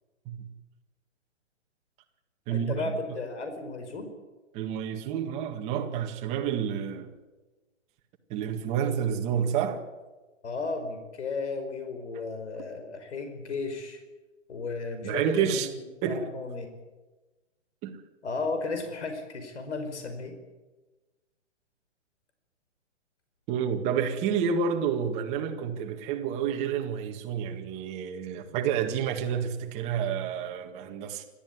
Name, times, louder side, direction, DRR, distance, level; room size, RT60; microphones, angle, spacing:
voice 1, 2.5-4.1 10.4-14.0 14.5-15.6 16.1-16.7 18.2-20.3, left 3 dB, 65° left, 5.3 m, -34 dB
voice 2, 4.5-7.1 8.3-9.8 15.0-15.7 16.0-16.2 17.8-18.0 23.5-31.2, right 8 dB, 15° right, 1.9 m, -29 dB
29.5 x 13.5 x 9.6 m
hypercardioid pair, 160°, 37 cm